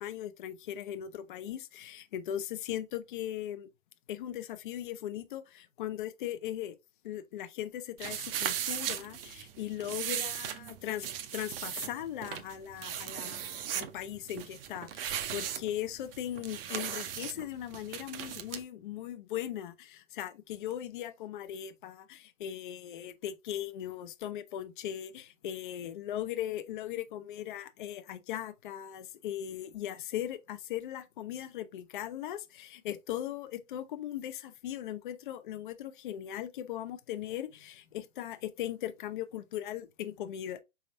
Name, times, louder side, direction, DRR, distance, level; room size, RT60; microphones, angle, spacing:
voice 1, 0.0-3.7 4.1-6.8 7.0-11.1 11.3-40.6, left 11 dB, 40° left, 0.4 m, -39 dB
sound 1, 8.0-18.6, right 9 dB, 45° right, 0.6 m, -38 dB
4.2 x 3.5 x 2.4 m
hypercardioid pair, 145°, 42 cm